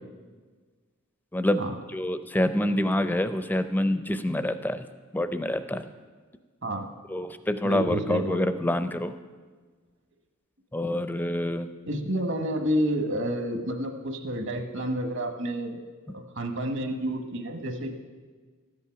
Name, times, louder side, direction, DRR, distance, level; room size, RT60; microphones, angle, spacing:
voice 1, 1.3-1.6 1.9-4.8 5.1-5.9 7.1-9.1 10.7-11.7, left 1 dB, 10° left, 10 dB, 0.4 m, -26 dB
voice 2, 7.6-8.4 11.9-15.8 16.1-17.9, equal, 60° right, 5 dB, 1.2 m, -29 dB
13.5 x 8.5 x 5.8 m, 1.5 s
head